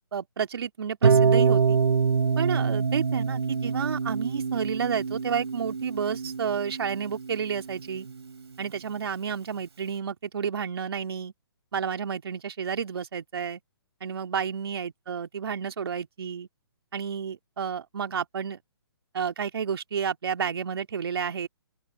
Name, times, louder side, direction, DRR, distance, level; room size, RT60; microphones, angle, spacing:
voice 1, 0.1-1.8 2.4-8.1 8.6-11.3 11.7-13.6 14.0-16.5 16.9-18.6 19.1-21.5, right 7 dB, 65° right, 3.0 m, -31 dB
Harp, 1.0-7.1, right 5 dB, 80° right, 3.3 m, -25 dB
open air
hypercardioid pair, 155°, 14 cm